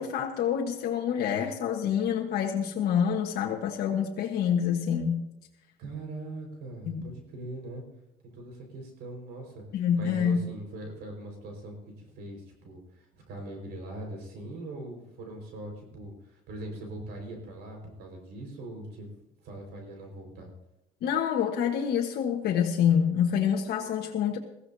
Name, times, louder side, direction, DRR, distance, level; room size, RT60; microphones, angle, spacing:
voice 1, 0.0-5.3 6.9-7.0 9.7-10.4 21.0-24.4, left 8 dB, 70° left, 0 dB, 1.4 m, -27 dB
voice 2, 5.8-7.8 8.2-9.6 9.9-19.1 19.4-20.5, right 1 dB, 80° right, 2 dB, 5.0 m, -41 dB
21.5 x 15.0 x 2.8 m, 0.89 s
cardioid pair, 110°, 17 cm